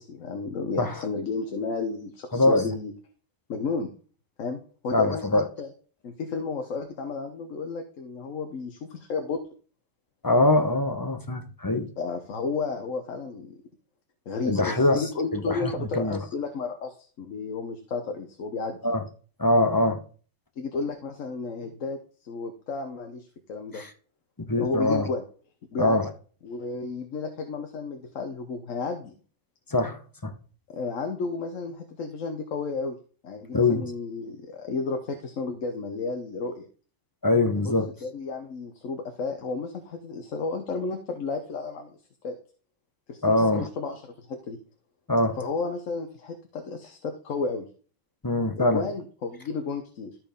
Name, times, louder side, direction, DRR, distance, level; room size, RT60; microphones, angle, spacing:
voice 1, 0.0-2.9 3.5-3.9 4.4-5.7 6.0-9.4 12.0-13.5 14.3-18.8 20.6-23.8 24.6-25.2 25.7-26.0 26.4-29.1 30.7-33.0 33.2-36.7 37.6-37.7 38.0-41.9 42.2-42.4 43.1-44.6 45.4-47.7 48.6-50.2, left 4 dB, 80° left, 1.3 m, -32 dB
voice 2, 2.3-2.7 4.9-5.5 10.2-11.9 14.4-15.0 15.3-16.2 18.8-19.0 19.4-20.0 23.7-23.9 24.5-25.1 25.8-26.1 29.7-30.3 33.5-33.9 37.2-37.8 43.2-43.6 45.1-45.4 48.2-48.8, left 2 dB, 20° left, 0.8 m, -23 dB
13.0 x 4.5 x 5.1 m
omnidirectional pair, 1.3 m